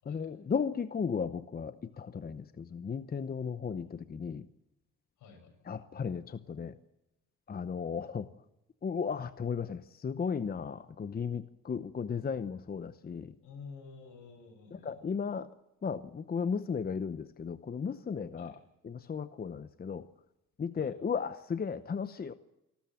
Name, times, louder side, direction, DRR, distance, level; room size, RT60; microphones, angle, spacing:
voice 1, 0.1-4.5 5.7-6.7 7.5-8.3 8.8-13.3 14.7-15.5 15.8-18.6 18.8-20.1 20.6-22.3, left 6 dB, 30° left, 13 dB, 0.8 m, -35 dB
voice 2, 5.2-5.6 13.4-15.0 18.4-18.6 20.8-21.0, left 5 dB, 80° left, 4 dB, 6.9 m, -50 dB
28.0 x 13.0 x 7.6 m, 0.91 s
cardioid pair, 90°, 30 cm